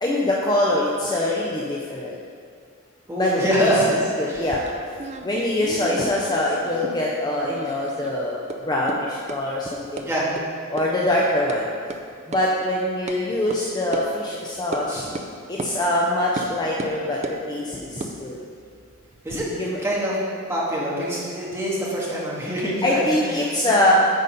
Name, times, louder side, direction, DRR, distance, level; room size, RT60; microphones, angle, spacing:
voice 1, 0.0-2.1 3.2-3.3 3.6-3.7 4.2-4.7 5.2-10.0 10.7-11.6 12.3-15.1 15.5-17.2 17.5-18.4 19.6-19.8 22.8-23.9, left 1 dB, 20° left, -4 dB, 0.6 m, -23 dB
voice 2, 3.1-3.9 4.3-4.4 10.1-10.3 14.9-15.0 19.2-19.4 19.8-20.2 20.5-23.0 23.3-23.9, equal, 10° right, -6 dB, 1.5 m, -25 dB
sound 1, 4.3-7.1 7.4-8.1 8.5-8.6 8.9-9.0 9.3-9.4 10.0-10.1 10.4-10.5 10.8-10.9 11.2-11.6 11.9-12.0 12.3-12.4 13.1-13.2 13.5-13.6 13.9-14.1 14.7-14.9 15.1-15.3 15.6-15.7 16.4-16.5 16.8-17.4 17.9-19.4, right 2 dB, 30° right, 0.4 m, -34 dB
9.3 x 4.1 x 5.3 m, 2.2 s
head